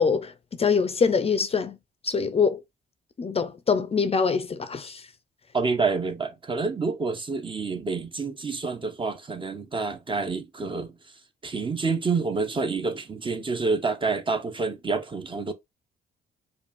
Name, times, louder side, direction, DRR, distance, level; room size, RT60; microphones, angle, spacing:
voice 1, 0.0-1.8 2.0-2.6 3.2-5.0, left 5 dB, 30° left, 0.5 m, -24 dB
voice 2, 5.5-10.9 11.4-15.5, right 4 dB, 25° right, 0.6 m, -28 dB
5.1 x 2.4 x 2.5 m
cardioid pair, 90°, 20 cm